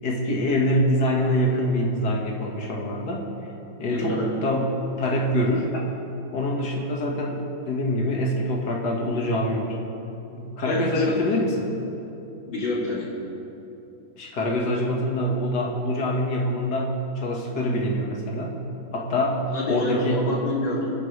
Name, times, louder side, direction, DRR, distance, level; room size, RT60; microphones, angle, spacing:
voice 1, 0.0-3.3 3.8-4.7 5.0-5.7 6.3-9.7 10.3-11.7 14.2-18.6 18.9-20.3, left 1 dB, 60° left, -2 dB, 2.3 m, -25 dB
voice 2, 3.9-4.3 10.6-11.2 12.5-13.1 19.5-20.9, left 2 dB, 80° left, -6 dB, 3.9 m, -28 dB
28.5 x 10.0 x 3.4 m, 2.8 s
omnidirectional pair, 2.1 m